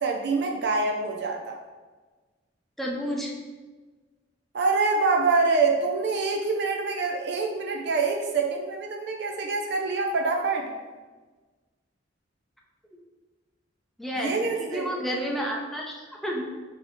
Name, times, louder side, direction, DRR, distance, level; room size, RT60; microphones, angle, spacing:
voice 1, 0.0-1.6 4.5-10.7 14.2-14.9, right 4 dB, 60° right, 2 dB, 0.4 m, -25 dB
voice 2, 2.8-3.3 14.0-16.4, equal, ahead, -2 dB, 0.5 m, -31 dB
3.9 x 2.8 x 4.1 m, 1.3 s
head